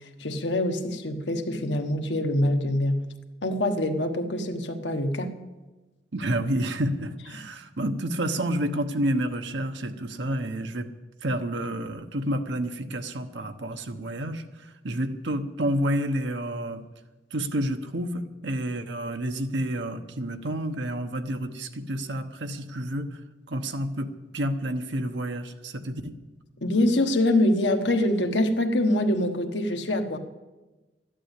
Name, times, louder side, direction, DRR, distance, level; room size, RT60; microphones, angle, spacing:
voice 1, 0.2-3.0 3.4-5.3 26.6-30.2, left 1 dB, 85° left, 5 dB, 1.3 m, -24 dB
voice 2, 6.1-10.9 11.2-16.9 17.3-23.2 23.5-26.2, right 1 dB, 85° right, 6 dB, 1.0 m, -29 dB
13.0 x 11.0 x 8.2 m, 1.2 s
head